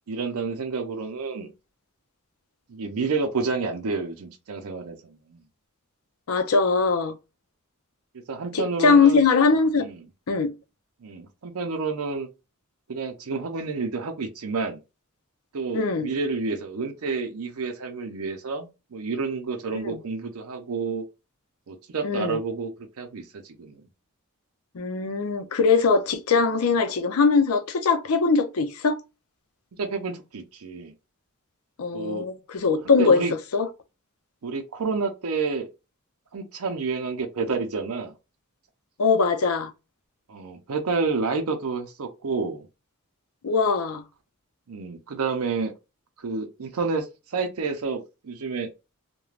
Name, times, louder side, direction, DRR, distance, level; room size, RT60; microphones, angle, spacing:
voice 1, 0.1-1.5 2.7-5.4 8.3-9.3 9.8-10.0 11.0-12.3 12.9-14.8 15.5-21.0 21.7-23.8 29.8-30.9 31.9-32.3 33.0-33.3 34.4-35.7 36.3-38.1 40.3-42.7 44.7-45.7 46.2-48.7, right 4 dB, 80° right, 0.5 m, -29 dB
voice 2, 6.3-7.2 8.5-9.9 10.3-10.5 15.7-16.1 19.7-20.0 22.0-22.4 24.7-29.0 31.8-33.2 33.5-33.7 39.0-39.7 43.4-44.0, left 4 dB, 85° left, 0.6 m, -21 dB
3.1 x 2.2 x 2.4 m
head